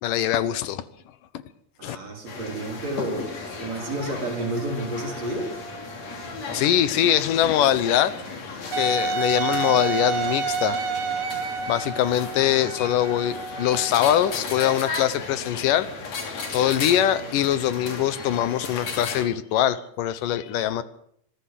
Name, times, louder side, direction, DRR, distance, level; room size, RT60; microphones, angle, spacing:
voice 1, 0.0-0.8 1.8-2.0 6.5-8.1 8.7-10.8 11.7-15.9 16.2-20.8, left 11 dB, 85° left, 15 dB, 2.7 m, -23 dB
voice 2, 1.8-3.3 3.6-5.5, right 1 dB, 55° right, 1 dB, 5.7 m, -30 dB
sound 1, 2.2-10.6, right 5 dB, 5° right, 3.2 m, -49 dB
sound 2, 2.3-19.2, left 4 dB, 55° left, 4.0 m, -35 dB
Wind instrument woodwind instrument, 8.7-14.4, right 6 dB, 70° right, 2.6 m, -29 dB
25.0 x 14.5 x 7.6 m, 0.68 s
omnidirectional pair, 3.7 m